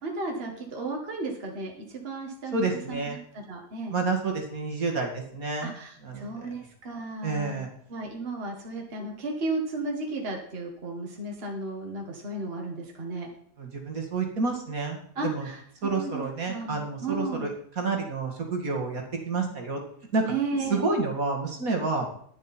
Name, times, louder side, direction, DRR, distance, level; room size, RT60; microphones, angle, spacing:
voice 1, 0.0-4.0 5.6-13.3 15.2-17.5 20.2-20.8, right 3 dB, 35° right, 1 dB, 1.9 m, -34 dB
voice 2, 2.5-3.2 3.9-5.7 6.0-6.3 7.2-7.7 13.6-15.5 15.8-17.5 17.8-19.8 20.1-20.2 20.7-22.1, right 3 dB, 55° right, 2 dB, 2.4 m, -29 dB
11.0 x 10.5 x 4.4 m, 0.62 s
omnidirectional pair, 1.8 m